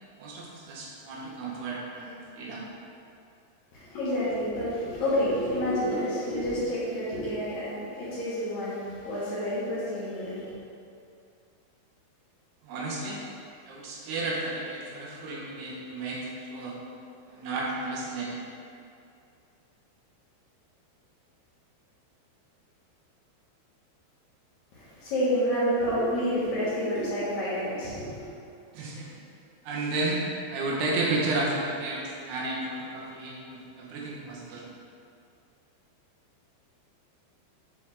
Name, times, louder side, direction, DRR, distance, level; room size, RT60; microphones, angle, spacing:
voice 1, 0.2-2.7 12.6-13.2 13.6-16.8 17.3-18.5 28.7-29.2 29.6-34.7, right 2 dB, 75° right, -4 dB, 2.7 m, -32 dB
voice 2, 3.7-10.5 24.7-28.3, equal, 80° left, -11 dB, 1.6 m, -29 dB
7.4 x 4.6 x 3.2 m, 2.5 s
omnidirectional pair, 5.3 m